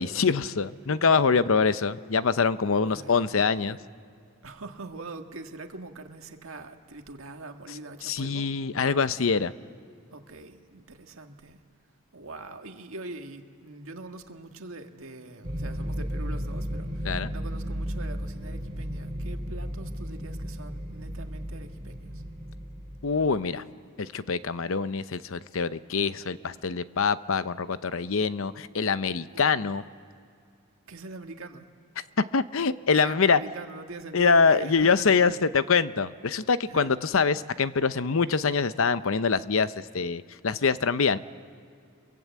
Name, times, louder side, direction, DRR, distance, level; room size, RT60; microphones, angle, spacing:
voice 1, 0.0-3.8 8.0-9.5 17.0-17.3 23.0-23.6 24.0-29.8 32.3-33.4 34.1-41.2, left 5 dB, 70° left, 14 dB, 0.7 m, -24 dB
voice 2, 2.8-3.3 3.6-3.7 4.4-8.5 10.1-11.6 12.1-22.2 29.3-29.9 30.8-31.7 32.9-35.4 36.6-36.9, right 2 dB, 70° right, 5 dB, 1.7 m, -43 dB
sound 1, 15.4-23.4, equal, 25° right, 2.5 m, -34 dB
30.0 x 23.0 x 8.3 m, 2.4 s
head